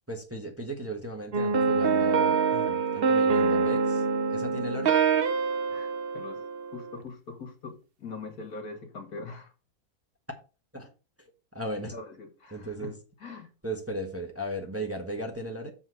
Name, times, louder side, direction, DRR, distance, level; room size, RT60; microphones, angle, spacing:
voice 1, 0.1-4.0 4.3-5.0 10.7-10.9 11.2-11.9 12.5-13.0 13.6-15.7, equal, 10° right, 1.2 m, -36 dB
sound 1, 1.3-7.0, right 5 dB, 50° right, 0.8 m, -25 dB
voice 2, 5.7-6.4 6.7-9.5 11.9-12.9 13.2-13.5, left 4 dB, 75° left, 2.2 m, -42 dB
7.5 x 4.1 x 6.2 m
omnidirectional pair, 1.7 m